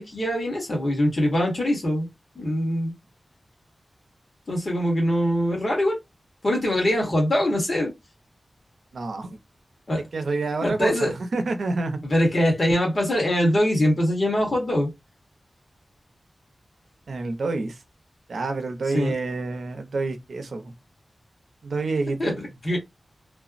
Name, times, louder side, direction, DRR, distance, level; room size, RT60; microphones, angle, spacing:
voice 1, 0.0-2.1 2.3-2.9 4.5-6.0 6.4-7.9 9.9-10.0 10.6-11.1 12.0-14.9 18.9-19.1 22.2-22.8, equal, 40° left, 1.4 m, -23 dB
voice 2, 8.9-9.4 10.1-12.0 17.1-17.8 18.3-20.7 21.6-22.4, right 3 dB, 90° right, 0.6 m, -28 dB
3.2 x 2.0 x 2.4 m
wide cardioid pair, 110°, 0 cm